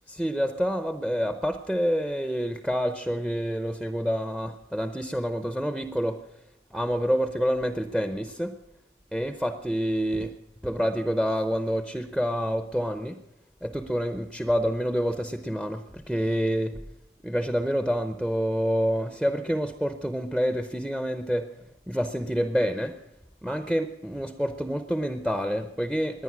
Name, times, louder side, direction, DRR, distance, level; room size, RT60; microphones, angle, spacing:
voice 1, 0.1-6.2 6.7-8.5 9.1-10.3 10.6-13.2 13.6-16.7 17.2-21.4 21.9-22.9 23.4-26.2, equal, 5° right, 9 dB, 0.7 m, -27 dB
19.0 x 11.0 x 6.1 m, 0.83 s
head